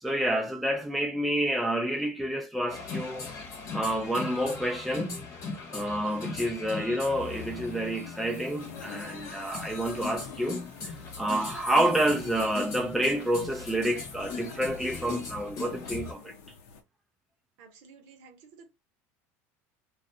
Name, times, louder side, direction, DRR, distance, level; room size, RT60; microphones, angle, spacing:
voice 1, 0.0-3.3 3.7-5.3 5.7-16.3, right 1 dB, ahead, 0.4 m, -29 dB
sound 1, 2.7-16.1, left 4 dB, 45° left, 0.9 m, -39 dB
sound 2, 7.1-16.8, left 6 dB, 80° left, 0.7 m, -48 dB
voice 2, 17.6-18.7, right 5 dB, 70° right, 0.8 m, -53 dB
2.4 x 2.3 x 2.6 m
supercardioid pair, 125°, 8 cm